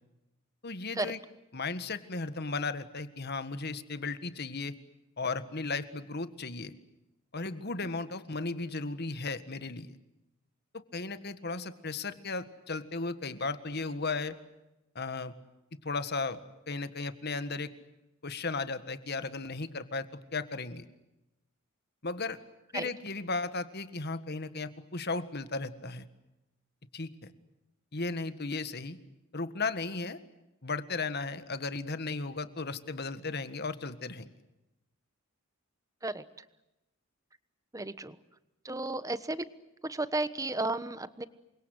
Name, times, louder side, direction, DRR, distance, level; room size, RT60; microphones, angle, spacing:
voice 1, 0.6-1.2 1.5-4.7 5.2-6.7 7.3-10.0 10.7-14.3 14.9-15.3 15.8-16.4 16.7-17.7 18.2-20.8 22.0-22.4 22.7-26.0 26.9-27.3 27.9-29.0 29.3-30.2 30.6-34.3, left 3 dB, 50° left, 12 dB, 1.7 m, -35 dB
voice 2, 37.7-38.2 38.6-39.5 39.8-41.2, right 2 dB, 15° right, 14 dB, 1.1 m, -33 dB
28.5 x 24.5 x 8.0 m, 0.95 s
head